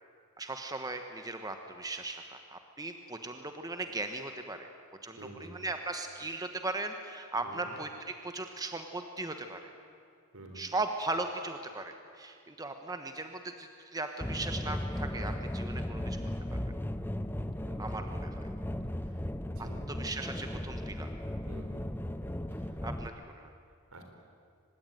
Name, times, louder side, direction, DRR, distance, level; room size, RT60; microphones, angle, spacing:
voice 1, 0.4-4.7 5.0-7.9 8.2-9.7 10.5-16.2 17.8-18.5 19.6-21.1 22.8-23.5, right 2 dB, 15° right, 6 dB, 1.2 m, -38 dB
voice 2, 5.2-5.6 7.4-7.7 10.3-10.6 17.6-17.8 19.0-19.9 21.4-21.9 22.5-22.8 23.7-24.0, right 1 dB, 70° right, 4 dB, 4.3 m, -50 dB
sound 1, 14.2-23.1, left 1 dB, 10° left, 0.7 m, -36 dB
24.5 x 20.5 x 9.3 m, 2.3 s
head